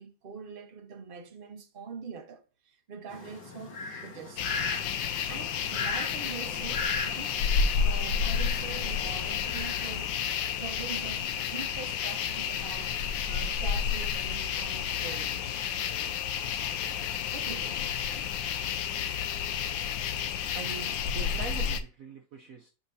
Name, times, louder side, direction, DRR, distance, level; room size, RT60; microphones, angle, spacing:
voice 1, 0.0-4.7 5.3-7.4 7.8-10.1 10.6-15.7 17.3-18.1, right 6 dB, 35° right, 1.0 m, -44 dB
Fowl, 3.1-10.1, left 4 dB, 70° left, 1.8 m, -38 dB
sound 1, 4.4-21.8, left 7 dB, 85° left, 1.4 m, -31 dB
voice 2, 20.5-22.7, right 5 dB, 60° right, 1.0 m, -43 dB
11.0 x 4.1 x 2.7 m
omnidirectional pair, 2.0 m